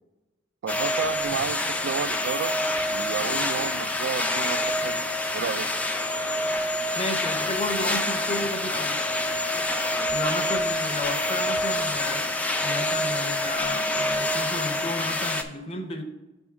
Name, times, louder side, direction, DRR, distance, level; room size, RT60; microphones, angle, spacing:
voice 1, 0.6-2.6 2.9-5.0 5.3-5.7, right 7 dB, 70° right, 15 dB, 0.3 m, -31 dB
sound 1, 0.7-15.4, left 1 dB, 5° left, 0.3 m, -27 dB
voice 2, 7.0-9.0 10.1-12.2 12.6-16.0, left 2 dB, 30° left, 6 dB, 0.7 m, -32 dB
6.0 x 3.5 x 6.0 m, 1.1 s
head